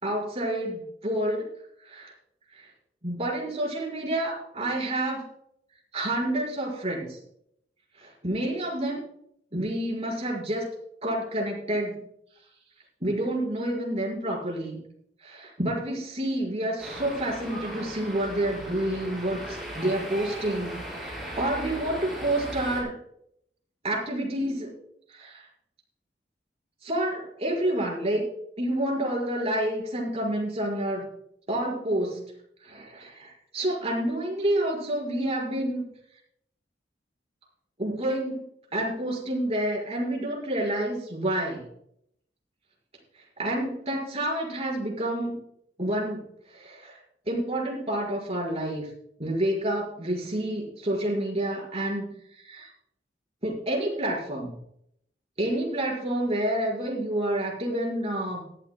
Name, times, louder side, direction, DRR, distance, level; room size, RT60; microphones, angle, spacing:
voice 1, 0.0-1.4 1.8-2.1 2.5-2.7 3.0-5.2 5.9-7.2 8.0-9.0 9.5-10.7 11.0-12.0 13.0-14.8 15.2-23.0 23.8-24.7 25.1-25.4 26.8-28.3 28.6-31.1 31.5-32.3 32.6-35.8 37.8-38.4 38.7-41.6 43.4-45.4 45.8-47.0 47.2-48.9 49.2-52.7 53.4-54.5 55.4-58.4, right 1 dB, 35° right, -2 dB, 5.1 m, -29 dB
sound 1, 16.8-22.8, equal, ahead, 5.6 m, -38 dB
18.5 x 13.0 x 2.3 m, 0.73 s
head